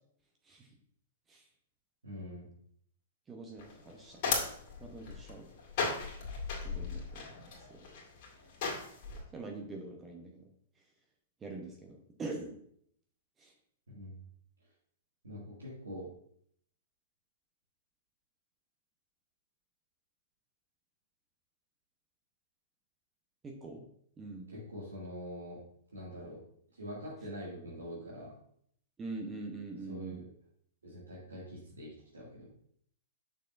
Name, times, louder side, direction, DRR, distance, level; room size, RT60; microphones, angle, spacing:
voice 1, 2.0-2.5 13.9-14.1 15.2-16.1 24.5-25.6 25.9-26.4 26.7-28.3 29.9-30.3 30.8-32.5, equal, 85° right, -7 dB, 2.3 m, -44 dB
voice 2, 3.3-4.2 4.8-5.5 6.6-7.3 7.7-7.8 9.3-10.5 11.4-12.6 13.4-13.5 23.4-23.8 24.2-24.5 29.0-30.2, right 3 dB, 20° right, 2 dB, 1.0 m, -43 dB
sound 1, 3.6-9.2, left 4 dB, 50° left, 2.3 m, -37 dB
6.5 x 6.4 x 2.6 m, 0.67 s
hypercardioid pair, 110°, 0 cm